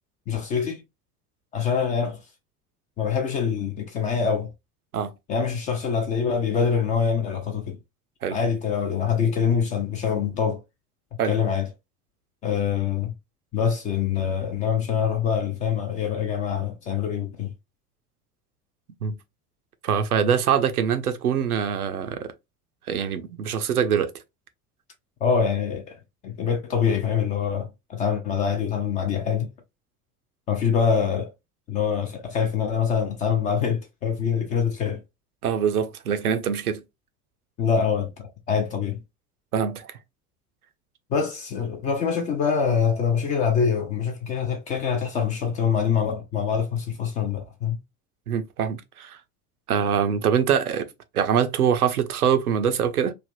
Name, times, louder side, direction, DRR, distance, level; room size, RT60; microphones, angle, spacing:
voice 1, 0.3-0.8 1.5-2.2 3.0-4.5 5.3-7.8 8.3-10.6 11.2-11.7 12.4-13.1 13.5-17.5 25.2-26.0 26.2-29.5 30.5-31.3 31.7-35.0 37.6-39.0 41.1-47.8, left 7 dB, 20° left, 0.3 m, -25 dB
voice 2, 19.8-22.3 22.9-24.1 35.4-36.8 39.5-40.0 48.3-49.2 49.7-50.9 51.1-53.1, right 8 dB, 80° right, 0.6 m, -24 dB
3.2 x 2.5 x 2.5 m
figure-of-eight pair, 75°, 44 cm